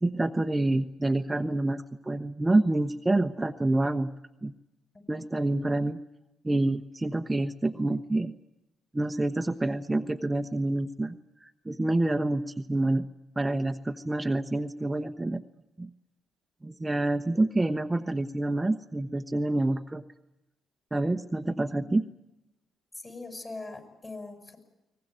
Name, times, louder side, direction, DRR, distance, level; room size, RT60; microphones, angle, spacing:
voice 1, 0.0-4.1 4.4-4.5 5.1-6.0 6.4-8.3 8.9-13.1 13.4-15.4 15.8-15.9 16.6-20.0 20.9-22.1, right 2 dB, 20° right, 7 dB, 1.0 m, -27 dB
voice 2, 22.9-24.6, left 3 dB, 30° left, 6 dB, 7.8 m, -42 dB
23.0 x 19.5 x 9.5 m, 0.94 s
hypercardioid pair, 50°, 0 cm